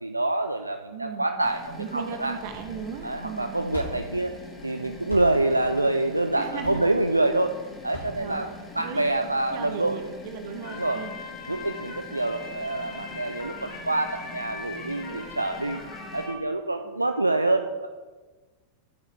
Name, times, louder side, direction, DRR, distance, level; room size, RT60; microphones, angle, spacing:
voice 1, 0.0-2.4 3.0-4.3 4.6-7.5 7.8-8.5 8.8-10.1 10.7-11.0 11.5-15.8 16.1-17.9, right 2 dB, 85° right, 7 dB, 0.4 m, -26 dB
voice 2, 0.9-1.3 1.8-3.5 6.4-6.8 8.2-8.5 8.8-9.2 9.5-11.1 16.8-17.0, right 7 dB, 50° right, 6 dB, 1.2 m, -37 dB
sound 1, 1.4-16.3, left 2 dB, 20° left, 2.0 m, -44 dB
sound 2, 3.3-9.1, left 1 dB, 75° left, 2.6 m, -42 dB
sound 3, 10.6-16.4, left 4 dB, 45° left, 2.3 m, -41 dB
13.5 x 6.6 x 3.3 m, 1.3 s
figure-of-eight pair, 90°, 0 cm